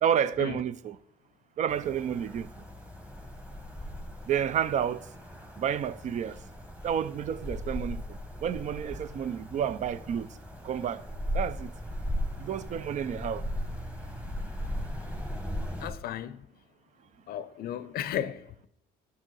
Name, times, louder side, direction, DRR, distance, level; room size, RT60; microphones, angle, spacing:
voice 1, 0.0-1.0 1.6-2.5 4.3-5.0 5.6-6.4 6.8-10.3 10.6-11.0 11.3-11.7 12.4-13.5, right 9 dB, 45° right, 0.4 m, -30 dB
sound 1, 1.7-15.9, equal, 10° right, 1.2 m, -38 dB
voice 2, 15.8-16.4 17.3-18.7, left 10 dB, 65° left, 0.5 m, -35 dB
10.5 x 6.3 x 4.0 m
cardioid pair, 110°, 17 cm